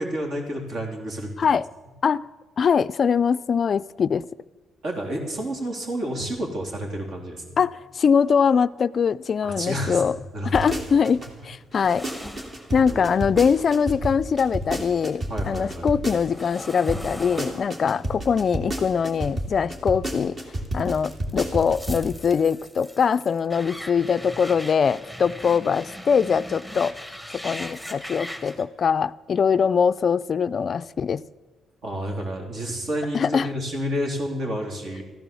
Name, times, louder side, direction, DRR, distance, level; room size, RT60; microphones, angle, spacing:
voice 1, 0.0-1.3 4.8-7.6 9.4-10.0 10.3-10.7 12.9-13.1 15.3-15.9 31.8-35.0, equal, 60° right, 3.6 m, -30 dB
voice 2, 2.6-4.3 7.6-10.2 10.5-12.1 12.7-20.4 20.7-27.1 27.3-31.2 33.1-33.5, left 6 dB, 50° left, 0.3 m, -22 dB
sound 1, 10.5-14.8 15.2-20.1 20.6-28.6, equal, 5° right, 1.5 m, -41 dB
sound 2, 10.5-11.3 11.7-16.6 16.9-22.1 22.4-22.5, right 1 dB, 40° right, 2.6 m, -30 dB
14.0 x 11.5 x 7.0 m
cardioid pair, 90°, 0 cm